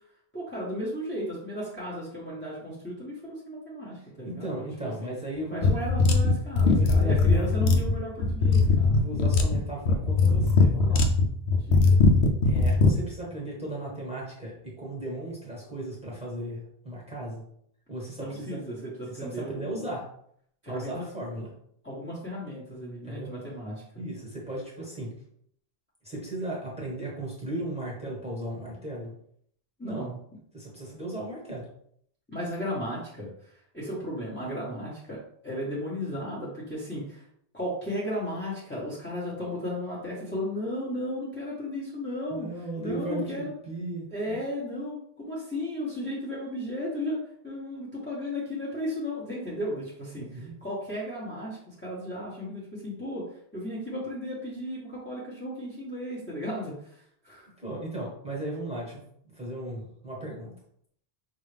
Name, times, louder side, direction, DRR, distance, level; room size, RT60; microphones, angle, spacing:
voice 1, 0.3-4.6 5.0-5.1 5.5-9.1 11.7-12.0 18.2-19.9 20.6-21.1 21.8-23.8 29.8-30.1 32.3-33.3 33.7-35.2 35.4-37.2 37.5-42.5 42.8-43.5 44.1-53.2 53.5-56.7 57.2-57.5, equal, 10° left, -8 dB, 1.1 m, -35 dB
voice 2, 4.2-5.7 6.6-7.5 8.9-11.1 12.4-17.4 17.9-18.6 19.1-20.0 20.7-21.5 23.0-23.3 24.0-25.1 26.0-29.1 29.8-30.1 30.5-31.7 42.3-44.4 50.1-50.6 57.6-59.0 59.3-60.5, right 1 dB, 5° right, -5 dB, 1.3 m, -36 dB
sound 1, 5.6-13.0, left 3 dB, 90° left, 0.9 m, -21 dB
5.4 x 2.5 x 3.3 m, 0.68 s
omnidirectional pair, 1.0 m